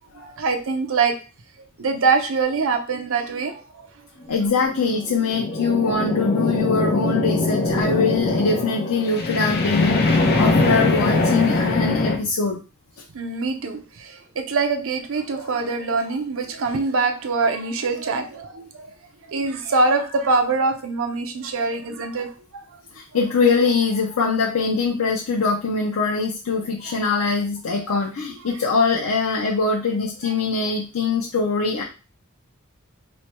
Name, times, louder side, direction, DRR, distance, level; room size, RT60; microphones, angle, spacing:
voice 1, 0.2-1.2 1.8-3.6 13.1-18.9 19.3-22.8 26.6-27.0 30.3-30.4, right 4 dB, 65° right, 6 dB, 0.6 m, -24 dB
voice 2, 4.3-12.6 22.9-31.8, left 4 dB, 90° left, -2 dB, 0.6 m, -22 dB
sound 1, 4.5-12.2, left 2 dB, 50° left, 0.8 m, -22 dB
3.2 x 2.2 x 4.3 m, 0.33 s
head